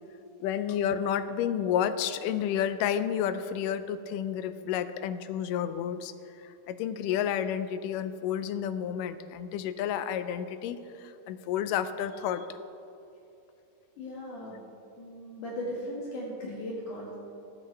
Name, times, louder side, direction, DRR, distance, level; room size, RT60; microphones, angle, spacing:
voice 1, 0.4-6.1 6.4-12.5, left 9 dB, 85° left, 11 dB, 2.1 m, -30 dB
voice 2, 14.0-14.6 15.0-17.2, left 1 dB, 70° left, -5 dB, 3.2 m, -37 dB
20.0 x 8.7 x 3.3 m, 2.8 s
omnidirectional pair, 3.8 m